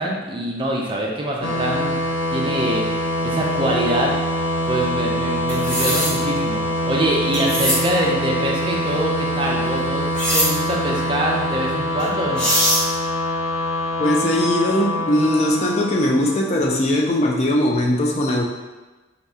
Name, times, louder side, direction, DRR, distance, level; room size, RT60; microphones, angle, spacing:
voice 1, 0.0-2.0 2.3-2.9 3.2-4.1 4.7-10.0 10.3-12.5, right 1 dB, 25° right, -2 dB, 0.5 m, -24 dB
sound 1, 1.4-16.8, left 1 dB, 85° left, 0.6 m, -24 dB
sound 2, 5.5-6.1 7.3-7.8 10.1-10.5 12.0-12.1 12.4-12.8, equal, 5° left, 0.9 m, -20 dB
voice 2, 14.0-18.4, left 1 dB, 35° left, -1 dB, 0.4 m, -20 dB
4.0 x 2.8 x 3.5 m, 1.2 s
head